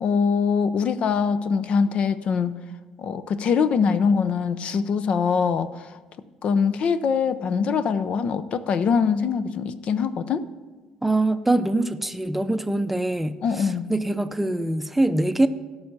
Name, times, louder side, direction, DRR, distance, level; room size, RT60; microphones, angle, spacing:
voice 1, 0.0-2.6 3.0-6.0 6.4-10.4 13.4-13.9, left 6 dB, 55° left, 13 dB, 0.5 m, -23 dB
voice 2, 11.0-15.5, right 2 dB, 10° right, 10 dB, 0.6 m, -23 dB
12.5 x 5.6 x 6.6 m, 1.3 s
supercardioid pair, 75°, 2 cm